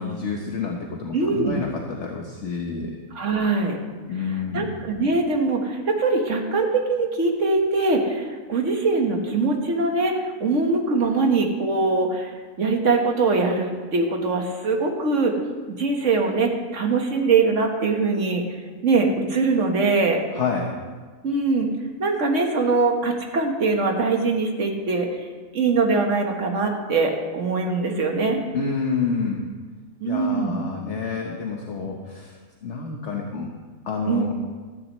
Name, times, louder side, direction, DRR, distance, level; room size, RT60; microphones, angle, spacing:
voice 1, 0.0-3.0 4.1-4.7 20.3-20.7 28.5-29.5 30.0-33.5 33.8-34.4, left 5 dB, 55° left, 1 dB, 1.3 m, -28 dB
voice 2, 1.1-1.6 3.1-3.8 4.5-15.4 15.7-18.4 18.8-20.3 21.2-21.7 22.0-25.3 25.5-28.4 30.0-30.6 34.1-34.3, right 3 dB, 55° right, 2 dB, 1.7 m, -22 dB
14.5 x 13.5 x 3.1 m, 1.4 s
omnidirectional pair, 1.5 m